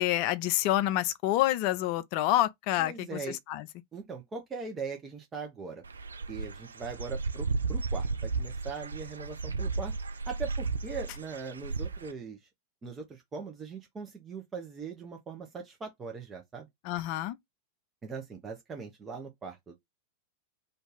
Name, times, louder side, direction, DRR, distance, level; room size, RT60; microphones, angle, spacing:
voice 1, 0.0-3.7 16.8-17.4, left 14 dB, 45° left, 0.3 m, -28 dB
voice 2, 2.8-3.4 3.9-5.8 6.3-9.9 10.3-12.4 12.8-16.7 18.0-19.8, right 5 dB, 20° right, 0.6 m, -40 dB
Dog / Bird, 5.8-12.1, right 4 dB, 75° right, 0.3 m, -34 dB
2.6 x 2.4 x 3.6 m
figure-of-eight pair, 90°, 0 cm